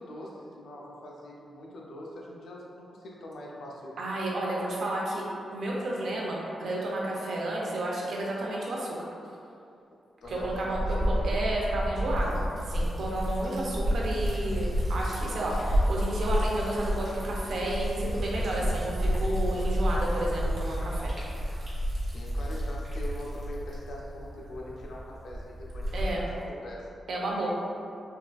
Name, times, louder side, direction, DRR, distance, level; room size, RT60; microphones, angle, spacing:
voice 1, 0.0-4.0 10.2-11.4 22.1-26.9, left 1 dB, 75° left, -3 dB, 0.5 m, -43 dB
voice 2, 4.0-5.2 5.5-9.1 10.3-21.1 25.9-26.2 27.1-27.5, right 1 dB, 75° right, -3 dB, 0.6 m, -31 dB
Liquid, 10.2-26.3, equal, 35° right, 1.1 m, -30 dB
3.6 x 2.4 x 2.3 m, 2.5 s
wide cardioid pair, 110°, 0 cm